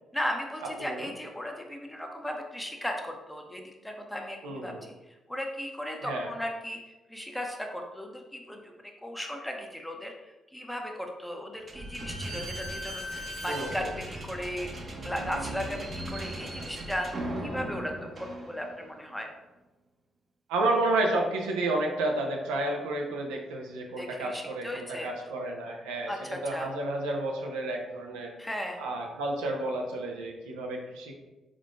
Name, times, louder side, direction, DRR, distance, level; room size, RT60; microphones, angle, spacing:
voice 1, 0.1-14.7 15.0-17.1 17.4-19.3 23.9-25.1 26.1-26.7 28.4-28.8, left 1 dB, 5° left, 2 dB, 0.8 m, -36 dB
voice 2, 4.4-4.8 6.0-6.3 13.5-13.9 20.5-28.3 28.8-31.1, right 2 dB, 90° right, 0 dB, 0.5 m, -31 dB
Slam / Squeak, 11.7-18.9, right 1 dB, 45° right, 0.7 m, -38 dB
3.7 x 3.6 x 2.4 m, 1.1 s
supercardioid pair, 50°, 0 cm